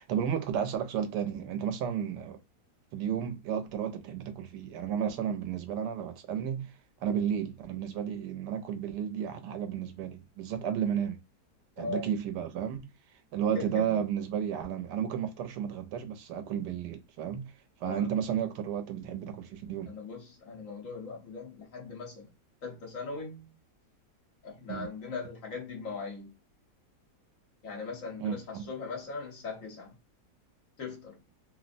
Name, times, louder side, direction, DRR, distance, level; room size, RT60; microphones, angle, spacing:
voice 1, 0.0-2.4 2.9-6.7 7.0-11.2 11.8-12.9 13.3-17.5 17.8-19.9 24.7-24.9 28.2-28.7, right 8 dB, 90° right, 1.2 m, -32 dB
voice 2, 11.8-12.1 13.5-14.0 17.9-18.1 19.9-22.3 22.6-23.5 24.4-26.3 27.6-29.9 30.8-31.2, left 4 dB, 55° left, 1.4 m, -40 dB
3.2 x 2.1 x 2.5 m
omnidirectional pair, 1.8 m